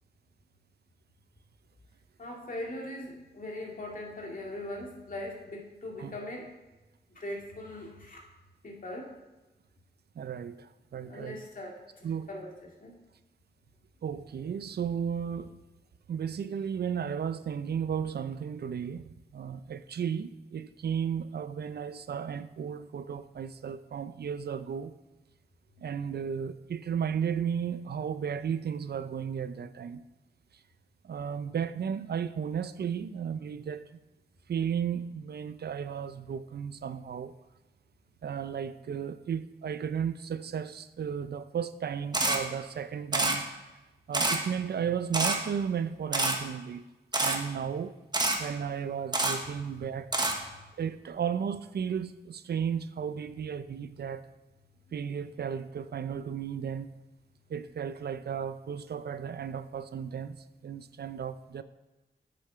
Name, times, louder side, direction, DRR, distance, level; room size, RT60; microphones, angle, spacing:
voice 1, 2.2-6.5 7.1-8.2 8.6-9.2 11.0-12.9 49.8-49.9 50.5-50.7, left 1 dB, 50° left, 2.4 m, -41 dB
voice 2, 10.2-11.4 12.0-12.3 14.0-15.6 16.1-24.9 25.8-30.0 31.0-33.8 34.5-37.3 38.2-43.5 44.1-46.8 47.2-48.0 48.4-50.1 50.8-54.3 54.9-57.0 57.5-61.6, right 7 dB, 70° right, 0.5 m, -34 dB
Camera, 42.1-42.4 43.1-43.4 44.1-44.4 45.1-45.4 46.1-46.4 47.1-47.4 48.1-48.4 49.1-49.4 50.1-50.3, right 2 dB, 25° right, 1.2 m, -26 dB
8.2 x 6.9 x 5.6 m
wide cardioid pair, 95°, 17 cm